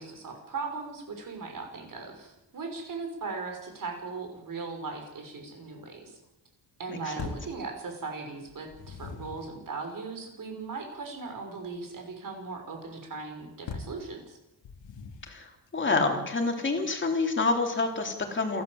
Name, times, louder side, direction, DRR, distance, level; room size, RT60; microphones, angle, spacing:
voice 1, 0.0-6.2 6.8-14.4, right 4 dB, 45° right, 4 dB, 6.1 m, -38 dB
voice 2, 6.9-7.3 15.3-18.6, left 3 dB, 25° left, 2 dB, 3.7 m, -28 dB
sound 1, 7.2-7.6 8.5-9.5 13.7-14.0 14.6-15.4, left 4 dB, 80° left, 2.9 m, -40 dB
28.0 x 13.0 x 8.1 m, 0.88 s
wide cardioid pair, 175°, 44 cm